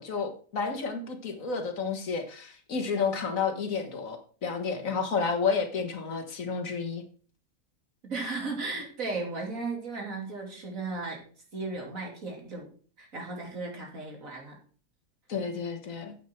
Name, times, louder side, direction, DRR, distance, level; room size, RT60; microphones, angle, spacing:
voice 1, 0.0-7.0 15.3-16.2, left 5 dB, 70° left, 5 dB, 1.9 m, -31 dB
voice 2, 8.0-11.2 11.5-12.7 13.0-14.6, right 3 dB, 70° right, 0 dB, 3.3 m, -35 dB
9.0 x 8.5 x 4.5 m, 0.42 s
omnidirectional pair, 1.5 m